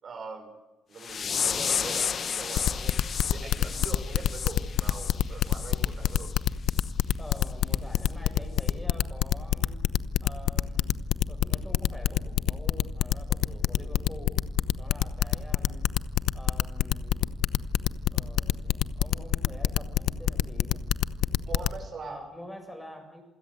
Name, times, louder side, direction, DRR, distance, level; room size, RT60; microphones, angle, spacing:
voice 1, 0.0-0.5 0.9-6.3 21.5-22.2, right 4 dB, 50° right, 5 dB, 5.8 m, -42 dB
sound 1, 1.0-5.7 6.1-6.3 6.8-6.9 7.4-7.5 8.0-8.1, left 7 dB, 45° left, 1.3 m, -32 dB
sound 2, 2.6-21.8, left 12 dB, 80° left, 0.8 m, -25 dB
voice 2, 7.2-9.8 10.2-11.0 11.3-14.4 14.8-15.9 16.3-17.2 18.1-20.8 22.0-23.2, left 1 dB, 10° left, 4 dB, 7.3 m, -46 dB
27.5 x 17.0 x 7.9 m, 1.1 s
cardioid pair, 95°, 0 cm